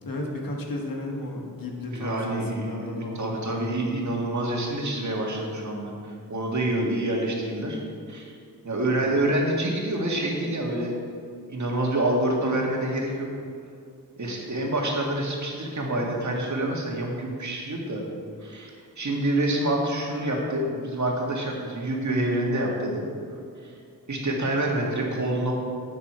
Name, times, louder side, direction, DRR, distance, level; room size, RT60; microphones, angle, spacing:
voice 1, 0.0-3.3, left 2 dB, 75° left, 0 dB, 1.6 m, -33 dB
voice 2, 1.9-7.8 8.1-8.3 8.6-11.0 11.5-13.3 14.2-18.0 18.4-18.7 19.0-23.0 23.6-23.7 24.1-25.5, right 1 dB, 55° right, -1 dB, 1.8 m, -27 dB
11.0 x 8.5 x 4.4 m, 2.3 s
wide cardioid pair, 120°, 35 cm